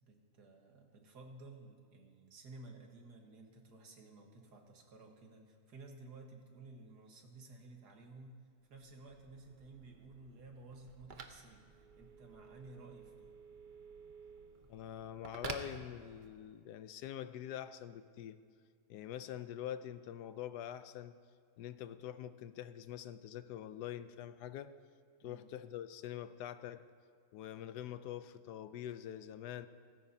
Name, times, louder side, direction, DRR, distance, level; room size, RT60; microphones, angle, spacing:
voice 1, 0.0-8.4 8.7-13.3 25.2-25.5, right 3 dB, 80° right, 2 dB, 2.0 m, -55 dB
Telephone, 8.7-16.6, right 5 dB, 45° right, 0.7 m, -51 dB
voice 2, 14.7-18.4 18.9-21.2 21.6-24.7 25.2-26.9 27.3-29.7, left 11 dB, 85° left, 13 dB, 1.2 m, -45 dB
18.0 x 15.5 x 2.8 m, 2.2 s
omnidirectional pair, 1.7 m